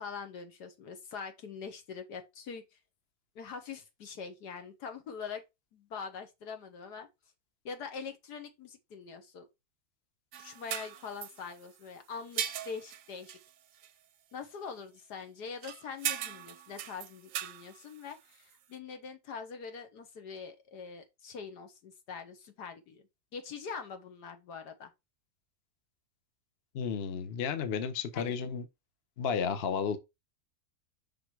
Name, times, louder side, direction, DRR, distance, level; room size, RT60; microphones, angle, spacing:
voice 1, 0.0-2.6 3.3-5.4 5.7-7.1 7.6-9.5 10.4-13.4 14.3-23.0 23.3-24.9 28.1-28.3, left 5 dB, 75° left, 1.7 m, -43 dB
sound 1, 10.3-11.9 12.1-13.5 13.8-13.9 15.6-18.5, right 10 dB, 65° right, 0.9 m, -39 dB
voice 2, 26.7-28.6 29.2-30.0, left 6 dB, 45° left, 0.9 m, -32 dB
5.9 x 3.8 x 4.6 m
omnidirectional pair, 1.7 m